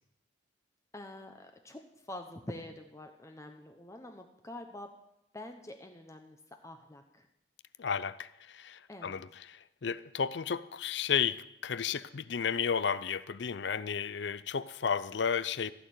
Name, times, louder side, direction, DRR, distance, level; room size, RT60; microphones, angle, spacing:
voice 1, 0.9-1.8 2.1-4.9 5.3-6.4 6.6-7.3 8.9-9.1, left 1 dB, 15° left, 4 dB, 0.8 m, -46 dB
voice 2, 7.8-15.7, left 7 dB, 60° left, 16 dB, 0.5 m, -33 dB
15.0 x 6.6 x 9.2 m, 0.84 s
head